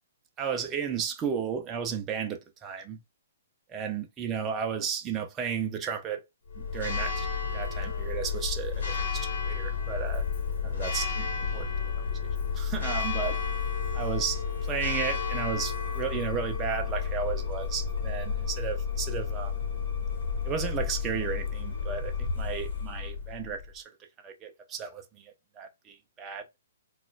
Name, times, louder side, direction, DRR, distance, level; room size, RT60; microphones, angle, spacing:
voice 1, 0.4-3.0 3.7-6.2 6.6-7.3 7.5-10.2 10.6-11.3 11.5-11.7 12.5-13.4 13.9-19.7 20.4-23.8 24.2-26.4, right 7 dB, 15° right, 0.5 m, -34 dB
Church bell, 6.5-23.7, left 6 dB, 60° left, 1.0 m, -31 dB
sound 1, 13.3-21.3, right 4 dB, 35° right, 1.3 m, -51 dB
Bowed string instrument, 15.9-23.1, left 4 dB, 15° left, 1.0 m, -54 dB
4.0 x 2.3 x 2.4 m
hypercardioid pair, 160°, 0 cm